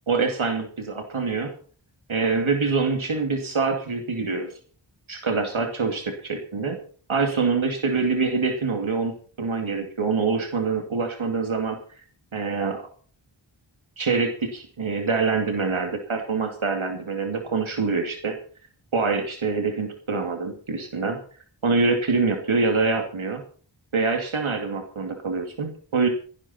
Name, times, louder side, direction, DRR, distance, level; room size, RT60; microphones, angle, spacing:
voice 1, 0.1-1.5 2.1-4.5 5.1-6.8 7.1-11.8 12.3-12.9 14.0-18.4 18.9-21.2 21.6-23.4 23.9-26.1, right 4 dB, 80° right, 4 dB, 2.6 m, -25 dB
17.5 x 16.5 x 4.4 m, 0.43 s
wide cardioid pair, 65°, 48 cm